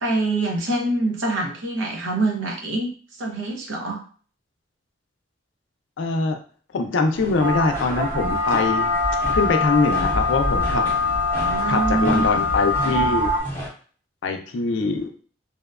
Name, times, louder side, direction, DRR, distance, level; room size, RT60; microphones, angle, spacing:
voice 1, 0.0-2.9 3.2-4.0 11.3-12.5, right 2 dB, 85° right, 1 dB, 0.7 m, -25 dB
voice 2, 6.0-6.4 6.7-8.9 9.3-10.8 11.7-13.4 14.2-15.1, left 4 dB, 75° left, 5 dB, 0.4 m, -23 dB
sound 1, 7.1-13.7, equal, 10° left, 0.7 m, -34 dB
sound 2, 7.4-13.4, left 2 dB, 70° right, 1.2 m, -23 dB
2.7 x 2.2 x 2.3 m, 0.43 s
head